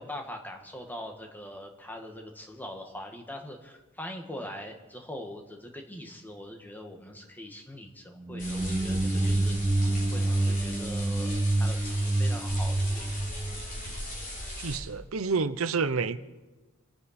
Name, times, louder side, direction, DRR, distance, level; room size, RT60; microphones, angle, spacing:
voice 1, 0.0-9.6 10.1-13.2, left 1 dB, 10° left, 2 dB, 1.6 m, -42 dB
sound 1, 8.2-14.2, right 2 dB, 15° right, 0.4 m, -27 dB
sound 2, 8.4-14.8, left 1 dB, 40° left, 4.5 m, -39 dB
voice 2, 14.6-16.2, right 4 dB, 80° right, 14 dB, 0.7 m, -28 dB
27.5 x 9.6 x 4.3 m, 1.2 s
head